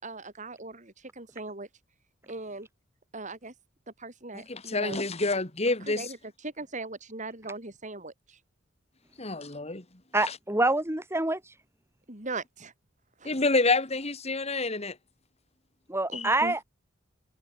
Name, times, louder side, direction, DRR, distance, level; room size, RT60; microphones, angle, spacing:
voice 1, 0.0-1.7 2.3-2.7 3.1-3.5 4.0-5.0 5.9-6.2 6.4-8.4 12.1-12.7 13.2-13.3 16.1-16.6, right 3 dB, 40° right, 5.5 m, -39 dB
voice 2, 4.3-6.1 9.2-9.8 10.3-10.4 13.2-15.0 16.1-16.3, left 3 dB, 35° left, 2.5 m, -28 dB
voice 3, 10.1-11.6 15.9-16.6, right 2 dB, 15° right, 3.3 m, -26 dB
head